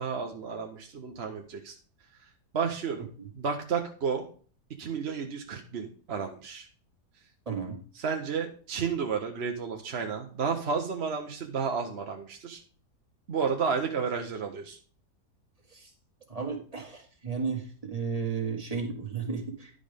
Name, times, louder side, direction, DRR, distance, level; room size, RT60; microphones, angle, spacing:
voice 1, 0.0-1.8 2.5-3.1 3.3-4.3 4.8-6.7 8.0-12.6 13.3-14.8, right 6 dB, 50° right, 3 dB, 1.0 m, -32 dB
voice 2, 7.5-7.8 15.7-15.9 16.3-19.7, right 5 dB, 20° right, 2 dB, 1.8 m, -33 dB
10.5 x 5.2 x 5.0 m, 0.42 s
omnidirectional pair, 1.8 m